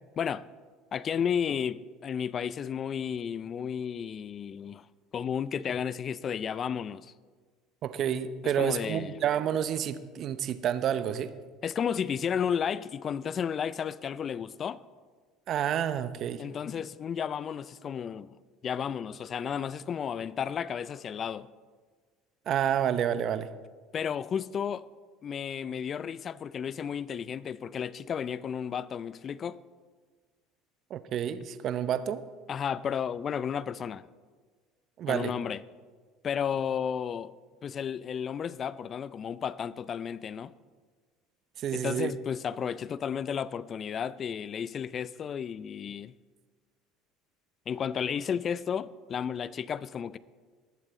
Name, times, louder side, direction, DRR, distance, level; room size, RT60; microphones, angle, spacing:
voice 1, 0.9-4.9 5.1-7.1 8.6-9.1 11.6-14.8 16.4-18.4 18.6-21.5 23.9-24.9 25.2-29.6 32.5-34.0 35.1-35.6 36.2-37.3 37.6-40.5 41.7-46.1 47.7-50.2, left 7 dB, 40° left, 0.4 m, -33 dB
voice 2, 7.8-11.3 15.5-16.4 22.5-23.5 30.9-32.3 35.0-35.3 41.6-42.1, right 9 dB, 50° right, 0.7 m, -29 dB
20.0 x 7.4 x 4.2 m
supercardioid pair, 90°, 0 cm